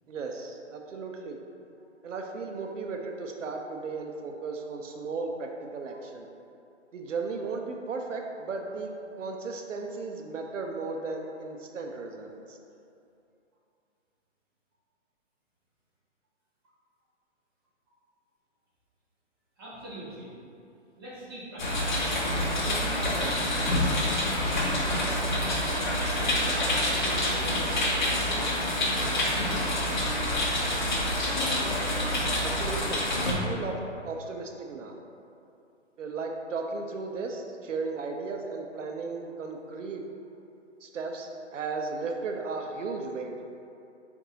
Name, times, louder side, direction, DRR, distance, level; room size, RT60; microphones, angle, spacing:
voice 1, 0.1-1.4 2.0-6.3 6.9-8.9 9.2-12.6 31.6-31.9 32.4-35.0 36.0-40.0 40.8-43.3, right 4 dB, 85° right, 2 dB, 0.6 m, -35 dB
voice 2, 19.6-20.3 21.0-22.1 22.5-23.7 24.0-25.6 26.1-29.9, right 1 dB, 20° right, -10 dB, 0.8 m, -42 dB
sound 1, 21.6-33.3, left 1 dB, 40° left, 0.7 m, -27 dB
3.9 x 2.6 x 4.0 m, 2.6 s
hypercardioid pair, 165°, 36 cm